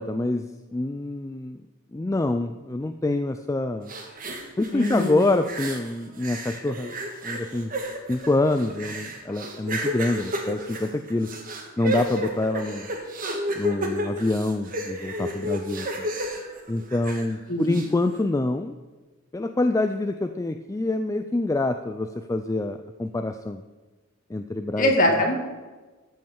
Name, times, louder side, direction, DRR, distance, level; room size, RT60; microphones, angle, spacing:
voice 1, 0.0-1.6 1.9-3.9 4.6-6.9 7.2-7.7 8.1-11.3 11.8-12.9 13.6-16.1 16.7-18.8 19.3-23.6 24.3-24.9, left 2 dB, 15° left, 8 dB, 0.3 m, -26 dB
sound 1, 3.9-5.9 6.2-17.3 17.7-17.9, equal, 40° right, 1.6 m, -32 dB
voice 2, 4.7-5.3 17.5-17.8 24.8-25.3, left 1 dB, 40° left, 1 dB, 2.2 m, -22 dB
13.5 x 5.4 x 7.0 m, 1.2 s
head